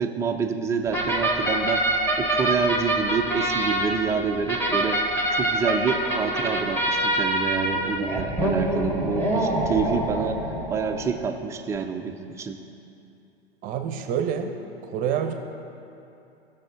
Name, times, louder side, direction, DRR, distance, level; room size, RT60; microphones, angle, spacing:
voice 1, 0.0-5.0 5.3-10.4 10.7-12.6, right 5 dB, 10° right, 5 dB, 0.4 m, -27 dB
sound 1, 0.9-11.3, right 1 dB, 5° left, 1.8 m, -25 dB
voice 2, 13.6-14.6 14.8-15.3, right 8 dB, 25° right, 6 dB, 0.8 m, -27 dB
18.0 x 6.5 x 3.7 m, 2.7 s
figure-of-eight pair, 95°, 31 cm